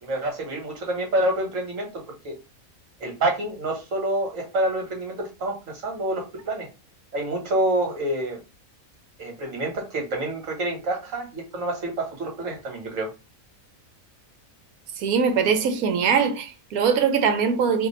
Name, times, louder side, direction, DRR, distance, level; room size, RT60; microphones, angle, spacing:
voice 1, 0.0-1.9 2.2-2.4 3.0-6.7 7.1-8.4 9.2-13.1, right 1 dB, 65° right, 1.5 m, -27 dB
voice 2, 15.0-17.9, right 6 dB, 80° right, 1.1 m, -22 dB
2.7 x 2.5 x 4.0 m
omnidirectional pair, 1.5 m